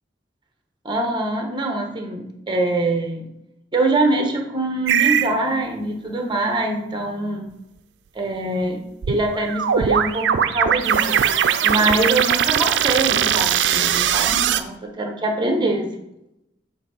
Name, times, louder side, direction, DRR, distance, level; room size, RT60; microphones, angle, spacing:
voice 1, 0.8-3.2 3.7-7.5 8.1-8.8 9.1-11.2 11.6-15.9, right 2 dB, 25° right, 3 dB, 1.0 m, -23 dB
sound 1, 4.9-5.3 9.0-14.6, right 9 dB, 80° right, 0.4 m, -20 dB
7.1 x 2.7 x 5.6 m, 0.85 s
head